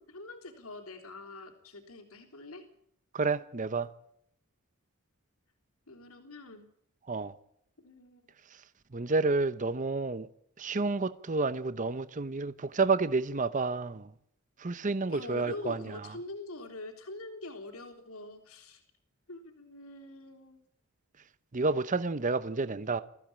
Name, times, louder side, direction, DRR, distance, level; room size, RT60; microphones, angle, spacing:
voice 1, 0.0-2.6 5.9-6.7 7.8-8.2 15.1-18.8 19.3-20.7, left 2 dB, 75° left, 3.6 m, -44 dB
voice 2, 3.1-3.9 7.1-7.4 8.5-8.6 8.9-10.3 10.6-14.1 14.6-16.1 21.5-23.0, right 3 dB, 35° right, 0.7 m, -30 dB
22.0 x 15.5 x 8.8 m
head